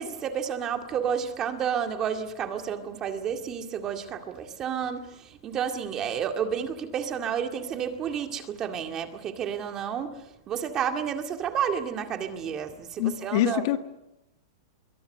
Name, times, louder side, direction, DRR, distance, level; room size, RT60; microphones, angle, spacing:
voice 1, 0.0-13.6, right 8 dB, 20° right, 5 dB, 2.1 m, -31 dB
voice 2, 13.0-13.8, left 12 dB, 50° left, 7 dB, 1.9 m, -25 dB
26.0 x 23.0 x 6.7 m, 0.91 s
supercardioid pair, 160°, 2 cm